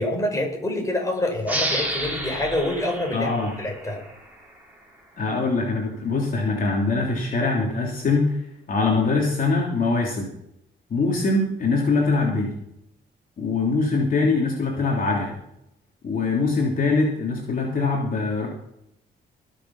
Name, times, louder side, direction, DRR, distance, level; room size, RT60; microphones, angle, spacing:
voice 1, 0.0-4.0, left 1 dB, 15° left, 1 dB, 5.3 m, -26 dB
sound 1, 1.4-4.7, right 1 dB, 10° right, 4.7 m, -31 dB
voice 2, 3.1-3.5 5.2-8.4 8.7-10.3 10.9-12.6 13.4-15.4 16.0-18.5, left 3 dB, 45° left, -2 dB, 3.2 m, -23 dB
20.0 x 7.2 x 5.8 m, 0.79 s
cardioid pair, 90°, 20 cm